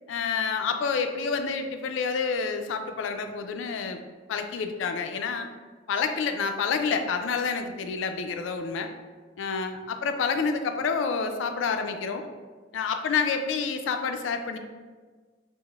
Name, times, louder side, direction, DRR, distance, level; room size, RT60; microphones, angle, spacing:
voice 1, 0.1-4.0 4.3-5.5 5.9-8.9 9.4-12.3 12.7-14.6, left 5 dB, 80° left, 6 dB, 0.3 m, -28 dB
4.8 x 2.0 x 2.3 m, 1.4 s
head